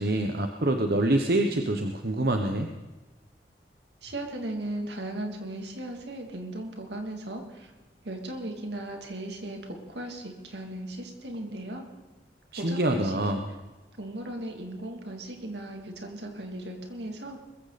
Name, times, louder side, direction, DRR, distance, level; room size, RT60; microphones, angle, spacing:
voice 1, 0.0-2.7 12.5-13.4, right 1 dB, 60° right, 4 dB, 1.1 m, -26 dB
voice 2, 4.0-7.7 8.0-11.8 12.6-13.4 14.0-17.4, right 1 dB, 80° right, 3 dB, 2.9 m, -37 dB
21.5 x 15.0 x 4.2 m, 1.2 s
head